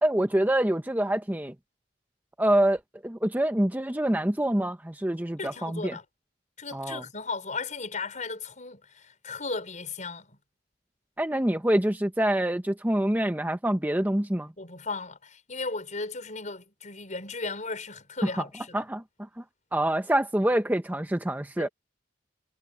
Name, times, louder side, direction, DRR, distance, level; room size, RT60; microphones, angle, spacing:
voice 1, 0.0-1.5 2.4-6.0 6.7-7.0 11.2-14.5 18.2-18.3 18.7-19.0 19.4-19.5 19.7-21.7, right 1 dB, 10° right, 0.8 m, -26 dB
voice 2, 5.4-6.0 6.6-10.4 14.6-18.8 21.6-21.7, left 3 dB, 40° left, 5.4 m, -36 dB
head